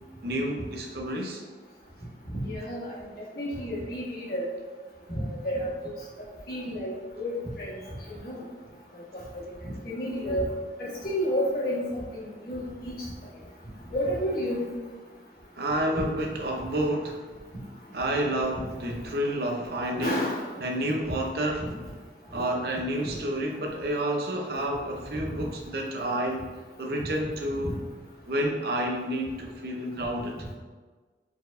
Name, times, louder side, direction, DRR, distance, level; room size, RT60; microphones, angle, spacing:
voice 1, 0.2-1.4 15.6-17.2 17.9-20.2 20.6-21.7 22.3-26.5 26.8-27.7 28.3-30.4, right 1 dB, 55° right, 1 dB, 0.6 m, -29 dB
voice 2, 2.3-3.0 3.4-4.5 5.1-5.7 6.5-7.8 8.2-8.4 9.1-9.4 9.8-10.5 10.8-12.9 13.9-14.7 18.5-18.6 20.0-20.4 21.6-21.7 22.3-22.5 27.6-27.7, equal, 55° left, -7 dB, 1.4 m, -31 dB
4.5 x 4.0 x 2.6 m, 1.4 s
head